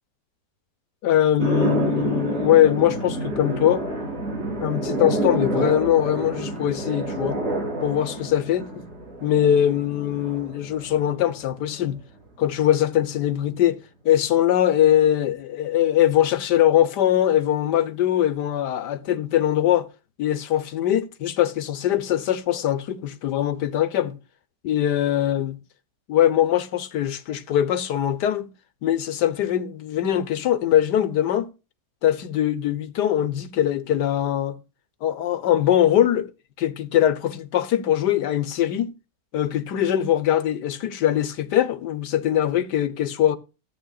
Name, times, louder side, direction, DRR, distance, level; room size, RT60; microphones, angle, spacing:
voice 1, 1.0-3.8 4.6-7.4 7.8-8.8 9.2-12.0 12.4-13.8 14.0-19.9 20.2-24.2 24.6-25.6 26.1-28.5 28.8-31.5 32.0-34.6 35.0-36.3 36.6-38.9 39.3-43.4, left 11 dB, 80° left, 1.6 m, -22 dB
sound 1, 1.4-11.8, right 2 dB, 50° right, 4.3 m, -28 dB
14.5 x 8.7 x 2.3 m
omnidirectional pair, 1.8 m